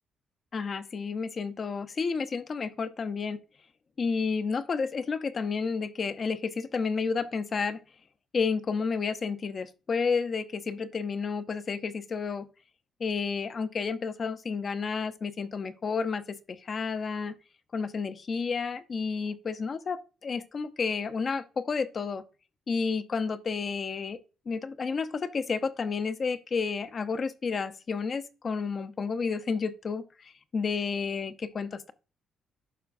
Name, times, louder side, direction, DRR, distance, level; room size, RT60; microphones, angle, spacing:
voice 1, 0.5-3.4 4.0-7.8 8.3-12.5 13.0-17.3 17.7-22.2 22.7-24.2 24.5-31.9, left 5 dB, 45° left, 0.7 m, -31 dB
11.5 x 4.4 x 2.6 m
cardioid pair, 90°, 0 cm